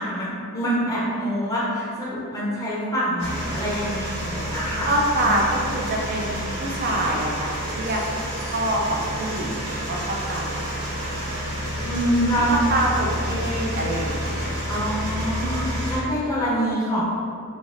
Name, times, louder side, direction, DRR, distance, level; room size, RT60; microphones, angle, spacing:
voice 1, 0.0-4.9 5.2-5.3 11.8-12.5 14.7-17.0, equal, 15° left, -7 dB, 0.6 m, -26 dB
sound 1, 3.2-16.0, equal, 75° right, 0.8 m, -29 dB
voice 2, 4.9-8.0 8.5-10.7 12.5-14.5 15.0-15.2, right 1 dB, 40° right, -1 dB, 0.4 m, -26 dB
3.1 x 2.4 x 2.5 m, 2.3 s
head